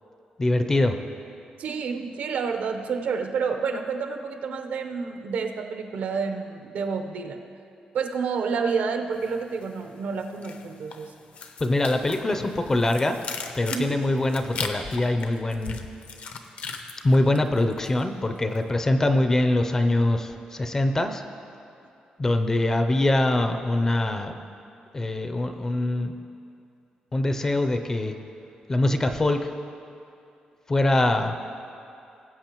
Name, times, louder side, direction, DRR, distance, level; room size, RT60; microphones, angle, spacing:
voice 1, 0.4-1.0 11.6-13.2 13.6-15.8 17.0-21.2 22.2-24.4 24.9-26.1 27.1-28.1 28.7-29.5 30.7-31.3, left 1 dB, 20° left, 7 dB, 0.5 m, -23 dB
voice 2, 1.6-7.4 7.9-11.1 13.7-14.0, right 5 dB, 75° right, 5 dB, 0.8 m, -29 dB
sound 1, 9.2-9.9 10.2-18.0 18.3-18.7, left 5 dB, 65° left, 0.7 m, -38 dB
19.5 x 8.1 x 3.0 m, 2.6 s
wide cardioid pair, 175°, 3 cm